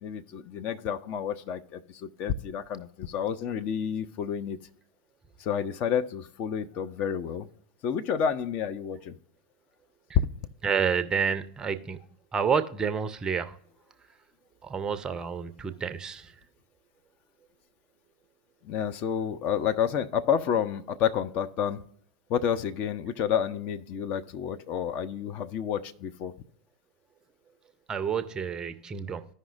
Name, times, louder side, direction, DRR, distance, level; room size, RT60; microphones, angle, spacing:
voice 1, 0.0-4.6 5.4-7.5 7.8-9.2 10.1-10.3 18.6-21.8 22.3-26.3, left 8 dB, 35° left, 0.5 m, -29 dB
voice 2, 10.6-12.0 12.3-13.6 14.6-16.3 27.9-29.3, right 6 dB, 20° right, 0.5 m, -29 dB
14.0 x 5.4 x 2.5 m
figure-of-eight pair, 95°, 4 cm